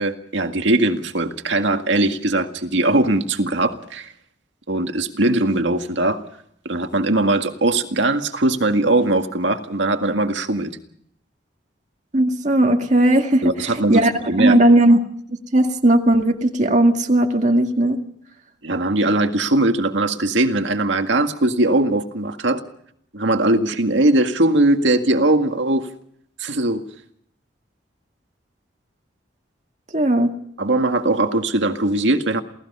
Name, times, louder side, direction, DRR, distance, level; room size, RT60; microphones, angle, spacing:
voice 1, 0.0-4.1 4.7-6.2 6.7-10.8 13.4-14.6 18.6-22.6 23.1-25.9 26.4-26.8 30.6-32.4, right 2 dB, 80° right, 6 dB, 1.9 m, -20 dB
voice 2, 12.1-14.1 14.4-15.0 15.3-18.0 29.9-30.3, right 1 dB, 40° right, 3 dB, 2.0 m, -17 dB
29.0 x 18.0 x 5.5 m, 0.68 s
head